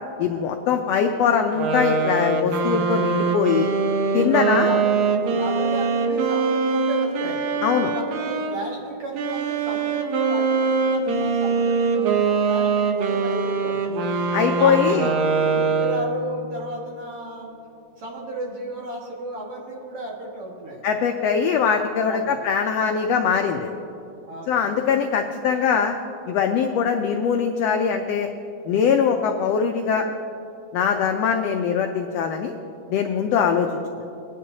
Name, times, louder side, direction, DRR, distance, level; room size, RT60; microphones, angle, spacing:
voice 1, 0.2-3.7 4.1-4.7 7.6-7.9 14.3-15.1 20.8-23.7 24.5-25.9 26.3-28.3 28.7-30.1 30.7-32.5 32.9-33.8, left 7 dB, 85° left, 4 dB, 1.4 m, -22 dB
sound 1, 1.5-8.6 9.1-16.3, right 4 dB, 70° right, 2.1 m, -23 dB
voice 2, 4.1-7.4 7.9-15.1 15.5-17.6 18.0-20.8 22.0-22.4 24.3-24.6, right 2 dB, 50° right, -3 dB, 2.4 m, -34 dB
20.0 x 10.0 x 2.8 m, 2.6 s
omnidirectional pair, 3.5 m